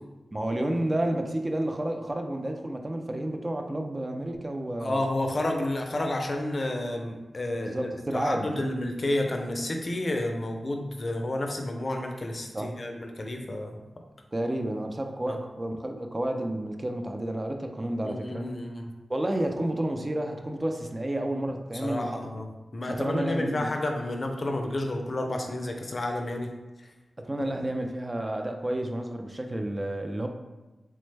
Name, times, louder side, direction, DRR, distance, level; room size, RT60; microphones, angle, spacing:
voice 1, 0.3-5.0 7.5-8.7 12.5-12.7 14.3-18.5 19.1-22.3 22.9-23.7 27.2-30.3, right 1 dB, 30° right, 4 dB, 0.3 m, -30 dB
voice 2, 4.8-13.8 15.3-15.4 18.0-18.9 21.7-22.5 22.7-26.5 26.8-26.9 27.5-27.6, left 1 dB, 50° left, 3 dB, 0.4 m, -30 dB
3.3 x 2.1 x 3.2 m, 1.1 s
cardioid pair, 65°, 0 cm